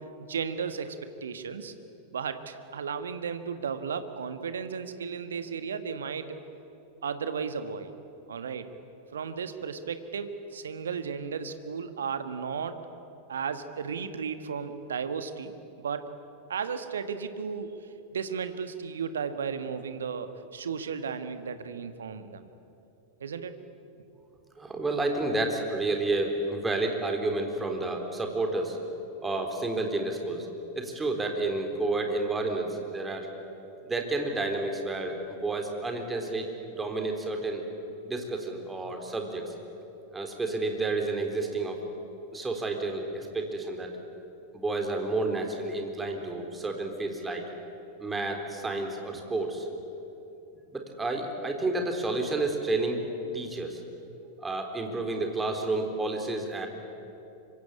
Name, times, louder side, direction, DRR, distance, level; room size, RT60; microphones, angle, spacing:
voice 1, 0.0-1.7 2.1-6.4 7.0-7.9 8.3-8.7 9.1-12.8 13.3-15.5 15.8-16.1 16.5-22.5 23.2-23.6, right 6 dB, 65° right, 10 dB, 1.6 m, -34 dB
voice 2, 24.6-28.8 29.2-30.5 30.7-33.3 33.8-36.5 36.8-37.6 38.0-39.5 40.1-41.8 42.3-43.9 44.5-47.4 48.0-49.7 50.7-53.8 54.4-56.7, right 2 dB, 10° right, 3 dB, 3.8 m, -30 dB
25.5 x 24.0 x 8.7 m, 3.0 s
figure-of-eight pair, 90°, 0 cm